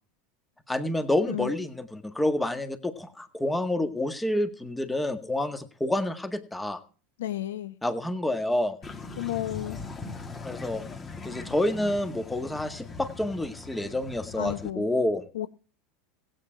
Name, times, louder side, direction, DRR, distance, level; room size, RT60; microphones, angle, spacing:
voice 1, 0.7-6.8 7.8-8.8 10.4-10.8 11.2-15.2, left 1 dB, 10° left, 1.7 m, -28 dB
voice 2, 7.2-7.8 9.2-9.8 14.4-14.9 15.3-15.5, left 13 dB, 85° left, 0.8 m, -32 dB
sound 1, 8.8-14.7, left 3 dB, 25° left, 1.9 m, -40 dB
16.0 x 8.9 x 4.5 m
hypercardioid pair, 95°, 0 cm